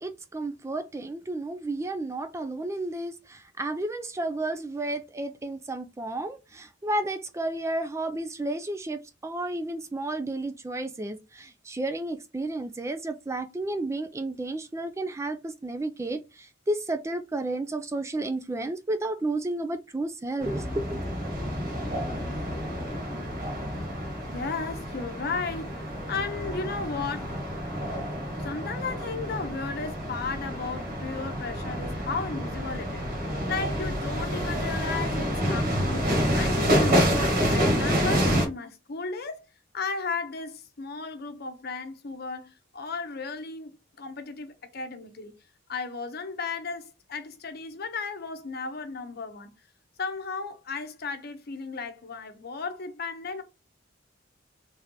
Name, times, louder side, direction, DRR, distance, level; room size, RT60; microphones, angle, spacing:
voice 1, 0.0-21.0, right 2 dB, 15° right, 0.3 m, -32 dB
sound 1, 20.4-38.5, equal, 50° right, 1.6 m, -28 dB
voice 2, 24.3-27.3 28.4-39.4 39.7-45.3 45.7-49.5 50.0-53.4, left 4 dB, 55° left, 0.8 m, -35 dB
3.3 x 2.8 x 3.7 m
head